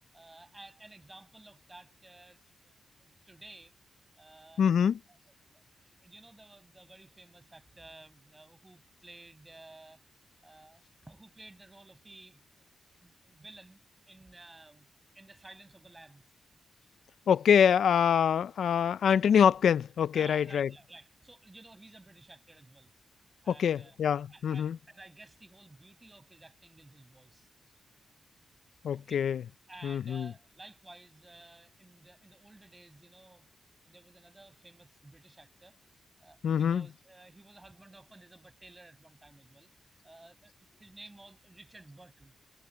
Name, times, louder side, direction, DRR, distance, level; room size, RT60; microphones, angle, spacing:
voice 1, 0.1-2.4 2.6-2.7 3.0-3.7 4.2-4.6 5.1-10.0 10.4-12.6 13.0-13.8 14.1-14.9 15.1-16.2 20.1-22.9 23.4-24.0 24.3-27.5 28.9-29.2 29.7-35.8 36.2-39.7 40.0-42.4, right 2 dB, 20° right, 5.8 m, -54 dB
voice 2, 4.6-5.0 17.3-20.7 23.5-24.8 28.8-29.4 29.8-30.3 36.4-36.9, left 8 dB, 85° left, 0.4 m, -25 dB
wide cardioid pair, 110°, 0 cm